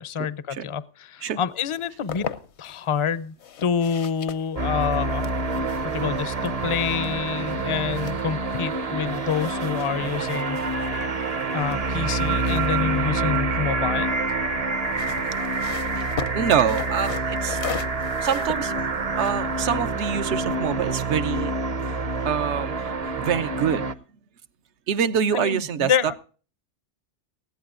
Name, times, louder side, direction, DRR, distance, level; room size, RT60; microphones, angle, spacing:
voice 1, 0.0-2.3 2.6-3.3 3.6-5.3 5.8-10.6 11.5-14.2 25.3-26.1, left 7 dB, 35° left, 17 dB, 0.5 m, -27 dB
sound 1, 1.7-2.8 3.4-8.8 9.1-13.7 14.7-20.3, left 8 dB, 70° left, 1.1 m, -39 dB
sound 2, 4.6-23.9, right 3 dB, 40° right, 0.7 m, -27 dB
voice 2, 16.0-17.6 18.2-18.7 19.2-21.6 22.2-23.8 24.9-25.9, right 8 dB, 75° right, 14 dB, 1.1 m, -25 dB
20.0 x 15.0 x 2.5 m, 0.39 s
omnidirectional pair, 1.2 m